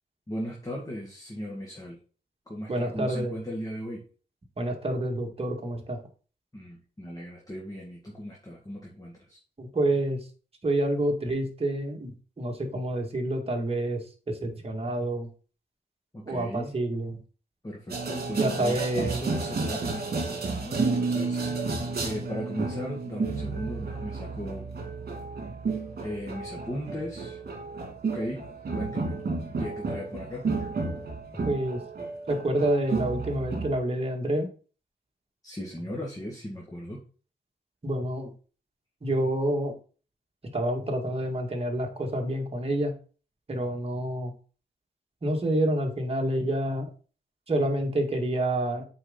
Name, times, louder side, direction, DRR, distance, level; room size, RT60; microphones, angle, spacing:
voice 1, 0.3-2.0 2.5-4.0 6.5-9.4 16.1-16.7 17.6-21.7 22.0-24.6 26.0-27.4 28.1-28.4 28.7-29.1 29.6-30.5 31.3-31.5 35.4-37.0, equal, 20° left, -2 dB, 1.9 m, -37 dB
voice 2, 2.7-3.3 4.6-6.0 9.6-10.2 10.6-15.3 16.3-17.2 18.4-19.2 31.5-31.8 32.3-34.5 37.8-38.3 39.0-39.7 40.5-42.9 43.5-44.3 45.2-46.9 47.5-48.8, right 1 dB, 35° right, 1 dB, 1.9 m, -28 dB
sound 1, 17.9-33.8, right 4 dB, 55° right, 2.2 m, -32 dB
7.5 x 4.8 x 3.9 m, 0.39 s
cardioid pair, 70°, 18 cm